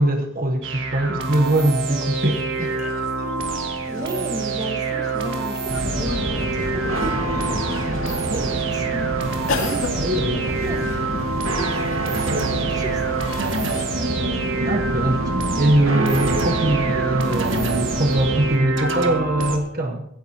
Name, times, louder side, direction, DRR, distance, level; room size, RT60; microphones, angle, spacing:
voice 1, 0.0-2.7 7.0-7.1 8.3-8.5 9.6-10.4 12.3-12.5 14.7-20.1, right 1 dB, 40° right, 3 dB, 1.0 m, -22 dB
sound 1, 0.6-19.6, right 4 dB, 60° right, 1.7 m, -26 dB
sound 2, 2.1-13.8, left 3 dB, 70° left, 2.0 m, -36 dB
voice 2, 3.9-7.0 7.3-7.8 8.1-9.1 10.3-11.3 12.0-13.2 14.0-14.3 15.1-15.2, equal, 15° right, 3 dB, 1.5 m, -35 dB
sound 3, 5.7-18.6, right 1 dB, 80° right, 1.8 m, -27 dB
24.0 x 10.5 x 2.9 m, 0.74 s
head